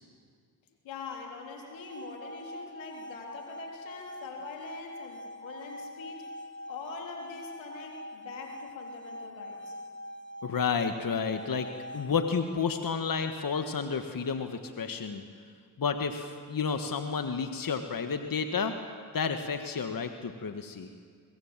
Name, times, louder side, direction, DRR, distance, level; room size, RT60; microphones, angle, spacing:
voice 1, 0.8-6.3 6.7-9.8, left 4 dB, 85° left, 0 dB, 3.7 m, -44 dB
sound 1, 1.6-12.5, left 1 dB, 25° left, 2.2 m, -44 dB
voice 2, 10.4-11.7 11.9-15.2 15.8-18.8 19.1-20.9, left 5 dB, 50° left, 7 dB, 1.7 m, -31 dB
24.0 x 22.5 x 7.5 m, 2.1 s
supercardioid pair, 45°, 45 cm